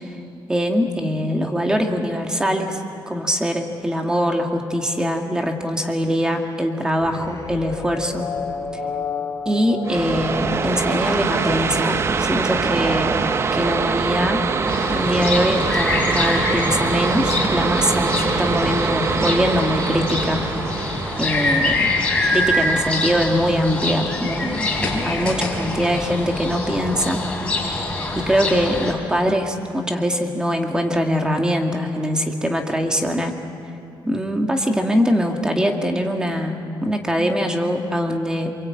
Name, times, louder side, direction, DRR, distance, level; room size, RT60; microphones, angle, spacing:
voice 1, 0.5-2.8 3.1-8.3 9.5-13.2 13.5-14.4 14.9-20.8 21.2-21.9 22.3-27.2 27.6-27.7 28.1-33.4 34.1-38.5, equal, 10° right, 3 dB, 2.1 m, -22 dB
sound 1, 7.0-12.5, left 5 dB, 35° left, 3.7 m, -32 dB
sound 2, 9.8-23.2, right 5 dB, 30° right, 0.7 m, -24 dB
sound 3, 14.7-28.9, left 2 dB, 10° left, 4.6 m, -24 dB
28.0 x 23.0 x 8.7 m, 2.7 s
cardioid pair, 160°, 9 cm